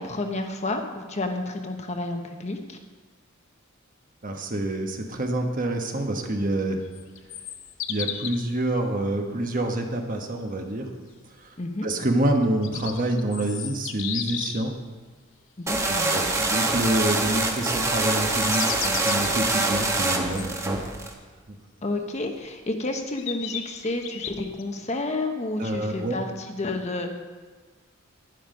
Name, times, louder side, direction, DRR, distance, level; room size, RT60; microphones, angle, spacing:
voice 1, 0.0-2.8 11.6-11.9 15.6-16.2 21.8-27.1, left 2 dB, 35° left, 4 dB, 1.0 m, -30 dB
voice 2, 4.2-6.9 7.9-10.9 11.4-11.5 11.8-14.7 15.8-20.8 25.6-26.1, right 1 dB, 40° right, 3 dB, 1.2 m, -27 dB
sound 1, 6.8-8.5 12.4-14.7 18.1-19.3 20.4-20.5 22.3-22.4 23.2-24.6, left 9 dB, 65° left, 0.8 m, -34 dB
sound 2, 15.7-21.1, right 2 dB, 15° right, 1.0 m, -25 dB
11.5 x 10.0 x 5.2 m, 1.4 s
head